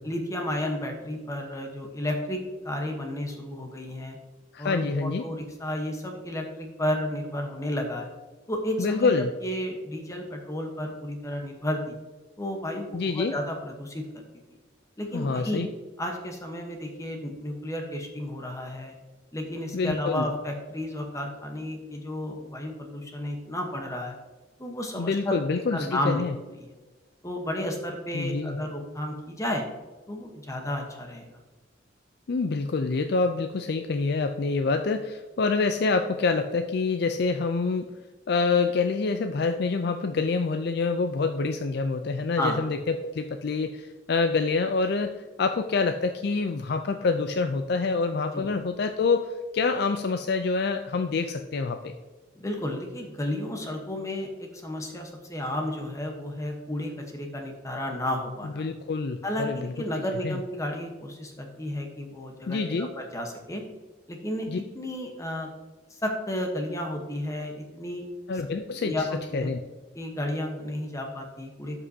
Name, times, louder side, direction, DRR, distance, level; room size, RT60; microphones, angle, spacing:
voice 1, 0.0-4.2 4.6-8.1 8.5-9.1 9.4-11.9 12.4-14.2 15.0-15.7 16.0-18.9 19.3-24.1 24.6-25.4 25.7-26.2 26.6-26.7 27.2-29.6 30.1-31.4 42.4-42.6 48.3-48.5 52.3-58.6 59.2-63.6 64.1-64.5 64.7-65.5 65.9-68.1 68.3-68.4 68.8-69.5 69.9-71.8, left 1 dB, 15° left, 2 dB, 1.0 m, -32 dB
voice 2, 4.5-5.3 8.8-9.3 12.9-13.4 15.1-15.7 19.7-20.3 25.0-26.3 28.1-28.6 32.3-38.0 38.3-52.0 58.4-59.7 60.2-60.4 62.5-62.9 64.5-64.6 68.3-69.1 69.3-69.6, left 4 dB, 60° left, 7 dB, 0.4 m, -26 dB
12.5 x 5.5 x 2.8 m, 1.2 s
head